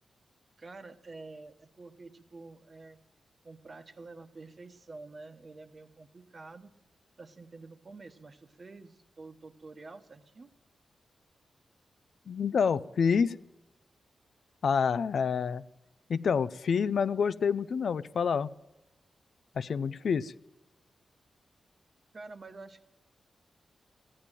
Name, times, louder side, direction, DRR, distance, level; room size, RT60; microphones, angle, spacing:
voice 1, 0.6-3.0 3.4-6.7 7.2-10.5 22.1-22.9, right 3 dB, 40° right, 9 dB, 1.1 m, -48 dB
voice 2, 12.3-13.4 14.6-15.6 16.1-18.5 19.6-20.3, left 6 dB, 70° left, 15 dB, 0.4 m, -27 dB
15.5 x 10.0 x 9.0 m, 0.97 s
wide cardioid pair, 110°, 0 cm